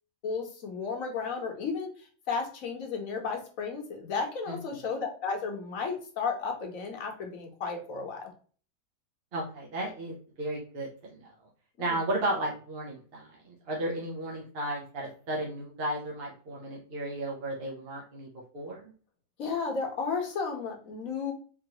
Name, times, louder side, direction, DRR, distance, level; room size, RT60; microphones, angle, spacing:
voice 1, 0.2-8.3 11.8-12.0 19.4-21.3, left 5 dB, 55° left, 2 dB, 1.3 m, -33 dB
voice 2, 9.3-11.3 11.8-13.3 13.7-18.3 18.5-18.8, right 1 dB, 50° right, -2 dB, 0.8 m, -34 dB
3.9 x 3.0 x 2.8 m, 0.42 s
omnidirectional pair, 1.8 m